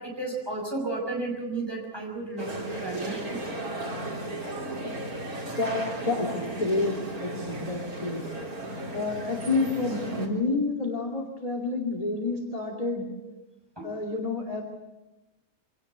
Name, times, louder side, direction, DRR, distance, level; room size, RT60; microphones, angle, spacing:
voice 1, 0.0-3.5 13.8-14.0, right 2 dB, 15° right, -1 dB, 6.0 m, -33 dB
sound 1, 2.4-10.3, right 2 dB, 80° right, 4.0 m, -35 dB
voice 2, 4.5-5.0 5.6-6.3 6.5-8.2 8.9-13.1 13.8-14.6, left 3 dB, 25° left, 3 dB, 2.7 m, -29 dB
25.0 x 18.0 x 8.3 m, 1.0 s
omnidirectional pair, 1.5 m